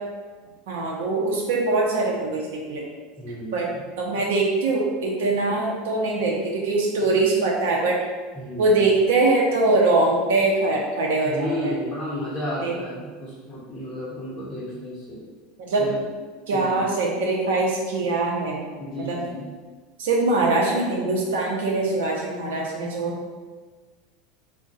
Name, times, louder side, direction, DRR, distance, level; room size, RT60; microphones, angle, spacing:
voice 1, 0.7-2.8 3.5-8.0 8.6-11.7 12.6-12.8 15.6-15.8 16.5-19.2 20.0-23.2, right 2 dB, 85° right, -2 dB, 0.6 m, -23 dB
voice 2, 3.2-3.7 8.3-8.8 11.3-15.2 15.8-16.0 16.5-16.9 18.8-19.5, left 1 dB, 10° left, -8 dB, 0.8 m, -32 dB
3.6 x 2.1 x 3.9 m, 1.4 s
supercardioid pair, 150°, 0 cm